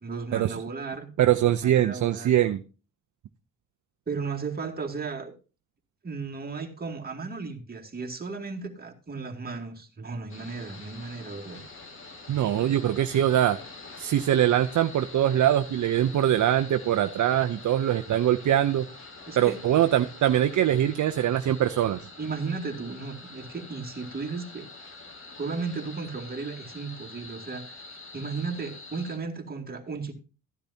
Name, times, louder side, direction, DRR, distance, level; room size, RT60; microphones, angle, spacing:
voice 1, 0.0-1.1 1.3-2.4 4.1-5.3 6.0-11.6 19.3-19.6 22.2-24.7 25.4-30.1, right 4 dB, 25° right, 1 dB, 2.3 m, -35 dB
voice 2, 1.2-2.6 12.3-13.6 14.0-18.9 19.4-22.1, right 11 dB, 60° right, 8 dB, 0.6 m, -23 dB
sound 1, 10.3-29.2, left 3 dB, 35° left, 2.1 m, -46 dB
14.5 x 10.5 x 2.8 m, 0.33 s
cardioid pair, 100°, 35 cm